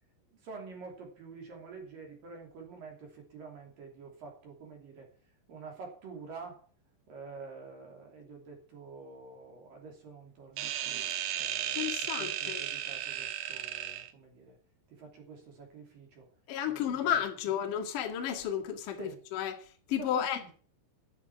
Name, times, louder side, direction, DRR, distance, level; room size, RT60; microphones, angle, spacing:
voice 1, 0.3-5.1 5.5-6.6 7.1-14.6 14.9-16.3 16.6-16.8 19.0-19.2 20.0-20.5, right 4 dB, 50° right, 4.1 m, -48 dB
sound 1, 10.6-14.1, right 11 dB, 75° right, 2.4 m, -35 dB
voice 2, 11.7-12.6 16.5-20.4, left 9 dB, 55° left, 2.6 m, -33 dB
11.5 x 7.2 x 9.1 m
omnidirectional pair, 5.8 m